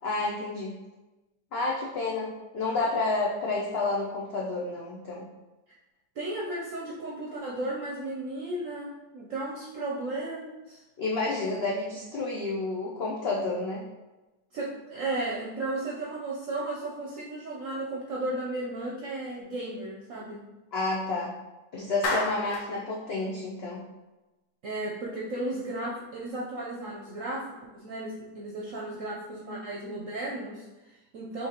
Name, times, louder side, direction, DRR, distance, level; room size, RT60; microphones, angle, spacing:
voice 1, 0.0-0.8 1.5-5.2 11.0-13.8 20.7-21.3 21.7-23.8, left 3 dB, 70° left, -3 dB, 0.5 m, -30 dB
voice 2, 6.2-10.8 14.5-20.4 24.6-31.5, right 2 dB, 60° right, -4 dB, 0.9 m, -34 dB
Clapping, 22.0-22.7, left 2 dB, 90° left, 1.4 m, -29 dB
5.5 x 3.2 x 2.9 m, 1.1 s
omnidirectional pair, 1.8 m